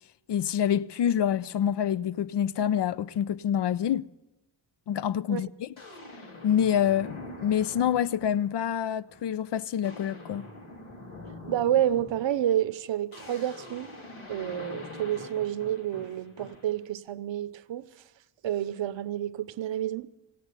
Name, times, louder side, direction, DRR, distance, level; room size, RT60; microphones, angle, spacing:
voice 1, 0.3-4.1 4.9-5.7 6.4-10.4, left 9 dB, 60° left, 0.5 m, -27 dB
sound 1, 4.9-5.0 5.8-8.6 9.1-9.4 9.6-16.8, left 2 dB, 80° left, 2.7 m, -44 dB
voice 2, 11.5-13.9 14.3-17.9 18.4-20.1, right 11 dB, 65° right, 0.8 m, -29 dB
16.5 x 9.4 x 8.7 m
cardioid pair, 60°, 48 cm